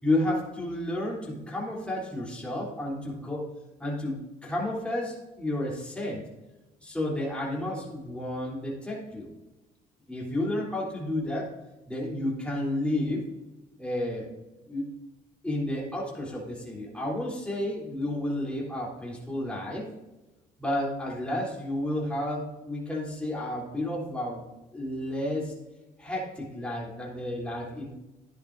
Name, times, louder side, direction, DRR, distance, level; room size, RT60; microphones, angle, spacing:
voice 1, 0.0-3.5 3.8-4.2 4.4-6.2 6.8-9.3 10.1-11.5 11.9-13.2 13.8-14.3 14.7-14.9 15.4-19.9 20.6-24.4 24.7-25.5 26.0-27.9, left 1 dB, 5° left, -4 dB, 3.4 m, -31 dB
12.0 x 9.7 x 2.6 m, 1.0 s
cardioid pair, 110°, 17 cm